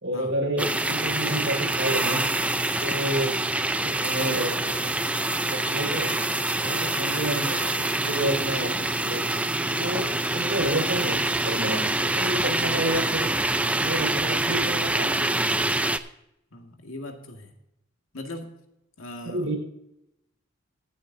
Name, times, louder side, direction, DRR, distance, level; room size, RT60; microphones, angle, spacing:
voice 1, 0.0-2.2 2.8-3.3 3.8-4.9 5.4-6.1 6.6-13.3 13.8-15.6 19.2-19.6, right 1 dB, 65° right, 0 dB, 5.1 m, -30 dB
sound 1, 0.6-16.0, right 2 dB, 5° right, 0.5 m, -26 dB
voice 2, 16.5-17.5 18.1-18.5 19.0-19.5, left 1 dB, 90° left, 3 dB, 2.0 m, -39 dB
24.5 x 8.3 x 2.7 m, 0.83 s
head